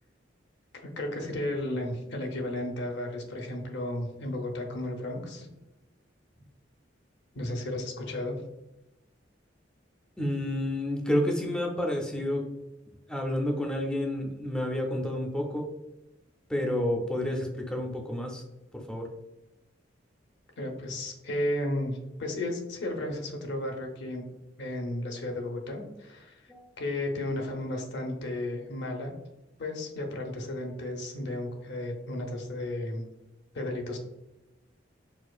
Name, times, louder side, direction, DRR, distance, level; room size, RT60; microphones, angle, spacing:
voice 1, 0.8-5.5 7.3-8.4 20.6-24.3 24.6-29.1 29.6-33.0 33.5-34.0, left 1 dB, 65° left, 2 dB, 0.6 m, -34 dB
voice 2, 10.2-12.5 13.1-15.7 16.5-18.4 18.7-19.1 26.5-26.7, left 1 dB, 5° left, 0 dB, 0.3 m, -30 dB
4.2 x 2.4 x 2.3 m, 0.99 s
head